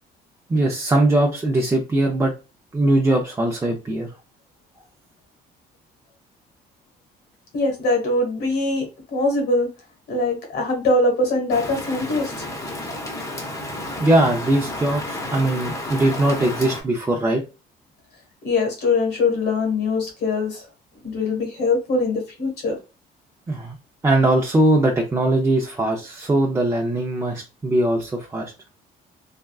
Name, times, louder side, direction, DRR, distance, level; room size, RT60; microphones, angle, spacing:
voice 1, 0.5-2.3 2.7-4.1 14.0-17.4 23.5-23.8 24.0-28.5, right 1 dB, 15° right, 0.5 m, -20 dB
voice 2, 7.5-9.7 10.1-12.4 18.4-20.6 20.9-22.8, left 2 dB, 80° left, 1.4 m, -22 dB
Rain, 11.5-16.8, left 1 dB, 20° left, 0.8 m, -31 dB
3.4 x 2.3 x 2.3 m
cardioid pair, 110°, 17 cm